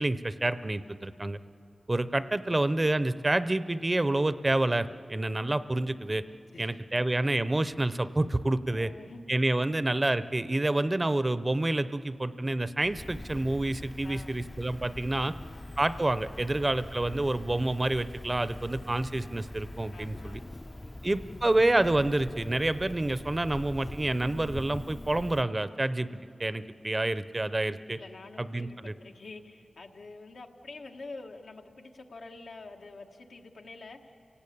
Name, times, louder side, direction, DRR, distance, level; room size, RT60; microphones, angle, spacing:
voice 1, 0.0-1.4 1.9-6.2 6.6-8.9 9.3-15.3 15.8-20.4 21.0-26.1 26.4-28.0 28.4-28.9, right 2 dB, 25° right, 13 dB, 0.6 m, -28 dB
voice 2, 6.5-7.1 8.7-9.2 14.0-14.4 15.1-15.8 16.2-16.7 19.9-21.5 27.9-34.1, left 3 dB, 85° left, 2 dB, 1.4 m, -48 dB
sound 1, 12.8-20.4, left 3 dB, 60° left, 0.9 m, -50 dB
Cricket, 13.0-25.4, left 1 dB, 20° left, 0.4 m, -44 dB
29.5 x 17.5 x 8.6 m, 3.0 s
wide cardioid pair, 85°, 0 cm